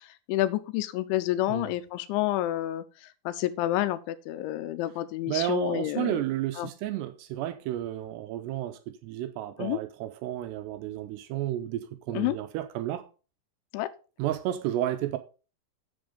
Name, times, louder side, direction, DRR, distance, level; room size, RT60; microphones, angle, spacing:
voice 1, 0.3-2.8 3.3-6.1 6.6-6.7 9.6-9.8 12.1-12.4 13.7-13.9, left 15 dB, 90° left, 3.1 m, -29 dB
voice 2, 5.3-13.1 14.2-15.2, right 13 dB, 80° right, 2.6 m, -32 dB
7.9 x 7.0 x 5.2 m
omnidirectional pair, 5.3 m